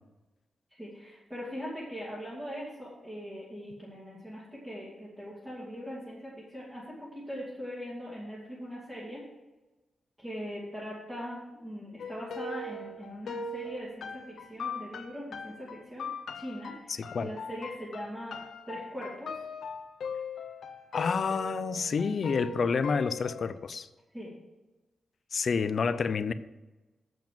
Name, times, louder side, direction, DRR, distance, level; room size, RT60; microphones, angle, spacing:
voice 1, 0.7-9.2 10.2-16.1 16.3-18.4 18.7-19.3 24.1-24.3, equal, 15° right, 2.7 m, -41 dB
sound 1, 12.0-23.6, left 4 dB, 70° left, 0.8 m, -40 dB
voice 2, 16.9-17.3 20.9-23.9 25.3-26.3, left 5 dB, 50° left, 0.5 m, -29 dB
7.6 x 7.1 x 7.7 m
wide cardioid pair, 150°, 0 cm